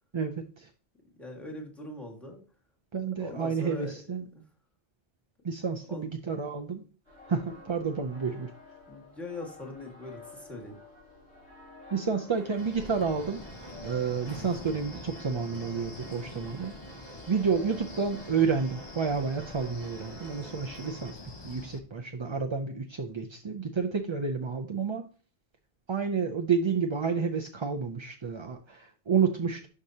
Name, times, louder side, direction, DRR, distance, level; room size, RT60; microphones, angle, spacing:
voice 1, 0.1-0.7 2.9-4.2 5.4-6.8 7.3-8.5 11.9-13.4 13.8-16.7 17.3-21.2 21.4-25.1 25.9-29.7, right 5 dB, 40° right, 3 dB, 0.4 m, -30 dB
voice 2, 1.2-2.4 3.2-3.9 4.3-4.4 5.9-6.1 8.9-10.7, left 2 dB, ahead, 1 dB, 1.8 m, -41 dB
sound 1, 7.1-20.9, left 3 dB, 65° left, 4.5 m, -52 dB
sound 2, 12.3-21.1, right 5 dB, 60° right, 1.2 m, -50 dB
Wind, 12.6-21.8, left 3 dB, 30° left, 0.7 m, -45 dB
12.0 x 4.9 x 2.8 m, 0.38 s
omnidirectional pair, 1.1 m